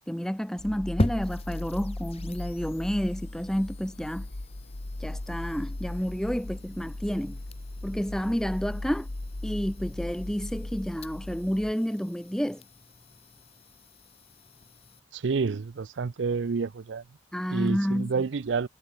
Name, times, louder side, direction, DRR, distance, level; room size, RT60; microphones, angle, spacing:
voice 1, 0.1-4.3 5.0-7.4 7.8-9.1 9.4-12.6 17.3-18.2, equal, 5° left, 0.9 m, -30 dB
sound 1, 0.6-11.7, left 1 dB, 70° left, 1.3 m, -38 dB
sound 2, 1.0-15.0, left 1 dB, 35° left, 0.9 m, -40 dB
voice 2, 15.1-17.0 17.5-18.7, right 5 dB, 80° right, 0.5 m, -29 dB
head